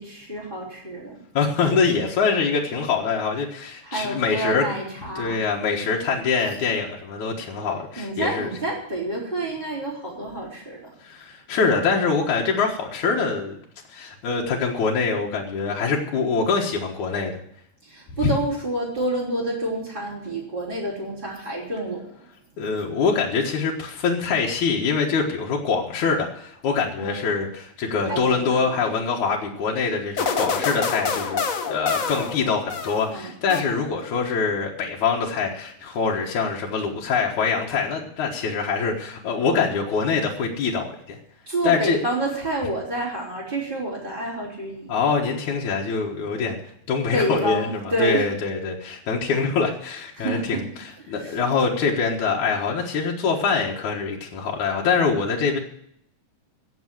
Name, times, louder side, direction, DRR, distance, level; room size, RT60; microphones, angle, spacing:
voice 1, 0.0-1.2 3.8-5.4 8.0-10.8 17.8-22.2 27.0-27.2 28.1-28.8 33.1-33.3 41.5-44.9 47.1-48.3 50.2-50.6 51.0-51.4, right 1 dB, 15° right, -8 dB, 4.1 m, -28 dB
voice 2, 1.3-4.7 5.2-8.5 11.0-13.6 13.9-17.4 18.2-18.3 22.6-41.2 41.6-42.0 44.9-46.6 46.9-50.6 51.1-55.6, left 5 dB, 85° left, -2 dB, 3.0 m, -24 dB
sound 1, 30.2-33.1 33.5-34.1, left 5 dB, 65° left, 0.8 m, -27 dB
16.0 x 7.1 x 7.8 m, 0.71 s
omnidirectional pair, 3.3 m